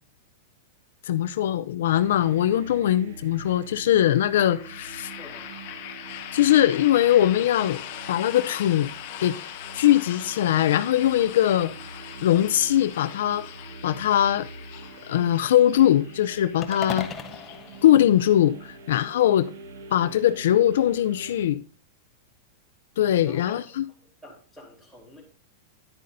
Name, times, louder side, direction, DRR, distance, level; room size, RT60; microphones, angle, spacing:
voice 1, 1.1-5.1 6.3-7.8 8.1-8.9 9.2-9.3 9.7-11.7 12.2-13.4 13.8-14.5 15.1-17.1 17.8-19.5 19.9-21.6 23.0-23.8, left 12 dB, 75° left, 0.4 m, -21 dB
sound 1, 1.9-21.5, right 4 dB, 85° right, 1.4 m, -44 dB
sound 2, 4.4-18.2, left 12 dB, 50° left, 0.9 m, -41 dB
voice 2, 5.2-5.5 19.2-19.3 23.2-23.8 24.2-25.2, left 1 dB, ahead, 3.5 m, -47 dB
sound 3, 16.6-18.9, left 7 dB, 20° left, 0.6 m, -37 dB
10.0 x 9.4 x 2.6 m
supercardioid pair, 160°, 0 cm